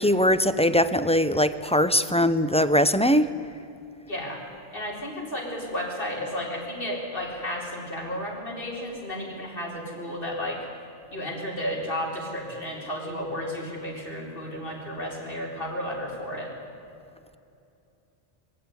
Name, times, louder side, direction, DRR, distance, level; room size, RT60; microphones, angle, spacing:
voice 1, 0.0-3.3, equal, 10° left, 12 dB, 0.4 m, -21 dB
voice 2, 4.1-4.4 4.7-10.6 11.1-16.5, equal, 55° left, -3 dB, 4.7 m, -33 dB
22.5 x 15.5 x 9.6 m, 2.7 s
omnidirectional pair, 1.1 m